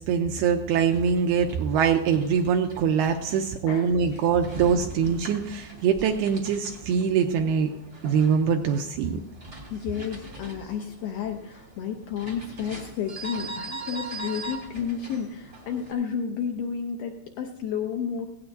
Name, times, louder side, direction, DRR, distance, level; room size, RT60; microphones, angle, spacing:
voice 1, 0.1-7.7 8.0-9.2, right 7 dB, 85° right, 4 dB, 2.3 m, -23 dB
sound 1, 0.6-15.9, right 2 dB, 40° right, 0.8 m, -42 dB
voice 2, 3.7-4.6 9.7-18.3, left 7 dB, 80° left, 3 dB, 2.1 m, -32 dB
17.5 x 16.5 x 2.6 m, 0.87 s
omnidirectional pair, 5.1 m